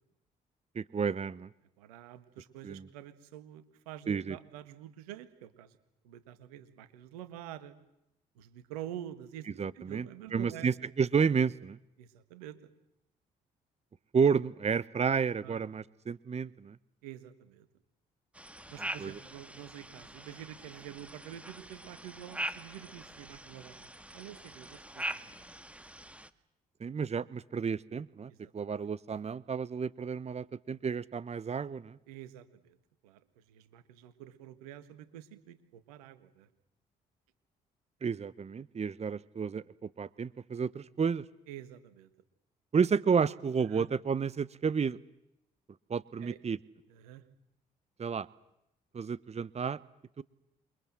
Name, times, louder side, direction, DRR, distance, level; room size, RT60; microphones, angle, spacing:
voice 1, 0.7-1.5 2.6-2.9 4.1-4.4 9.6-11.8 14.1-16.8 19.0-19.1 26.8-32.0 38.0-41.2 42.7-45.0 45.9-46.6 48.0-48.3 48.9-49.8 50.2-50.3, right 6 dB, 35° right, 19 dB, 1.0 m, -31 dB
voice 2, 1.8-5.8 6.0-7.8 8.4-10.7 12.0-12.7 15.4-15.6 17.0-17.7 18.7-25.3 28.3-28.5 32.1-32.8 33.0-36.5 41.5-42.1 43.7-43.9 46.2-46.4 46.9-47.2, right 11 dB, 85° right, 13 dB, 1.8 m, -47 dB
sound 1, 18.3-26.3, right 1 dB, 5° right, 1.9 m, -43 dB
28.0 x 23.5 x 7.6 m, 0.84 s
hypercardioid pair, 50°, 19 cm